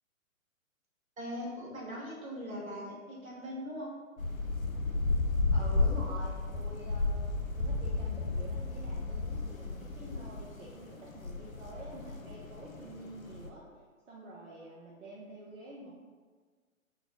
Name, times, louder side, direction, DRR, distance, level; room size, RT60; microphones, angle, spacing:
voice 1, 1.2-3.9, equal, 80° right, -5 dB, 1.4 m, -40 dB
sound 1, 4.2-13.5, left 3 dB, 80° left, 0.6 m, -33 dB
voice 2, 5.5-13.6 14.1-15.9, right 2 dB, 60° right, -4 dB, 0.7 m, -47 dB
4.1 x 2.2 x 3.9 m, 1.5 s
figure-of-eight pair, 120°, 41 cm